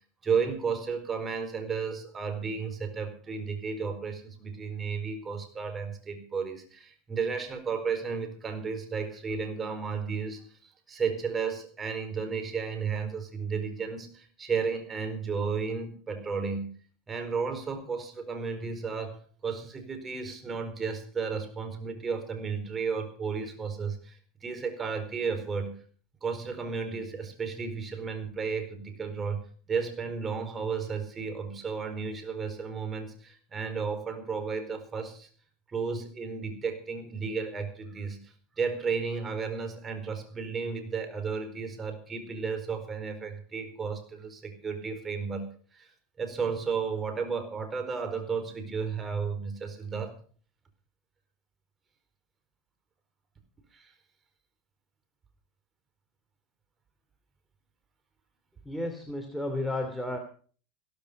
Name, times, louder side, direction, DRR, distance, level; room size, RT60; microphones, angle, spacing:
voice 1, 0.2-10.6 10.9-16.8 17.1-25.8 26.2-29.4 29.7-35.3 35.7-50.2 53.7-53.9, right 5 dB, 25° right, 7 dB, 4.5 m, -33 dB
voice 2, 58.6-60.2, left 1 dB, ahead, 3 dB, 2.8 m, -32 dB
16.0 x 14.0 x 5.2 m, 0.43 s
hypercardioid pair, 105°, 0 cm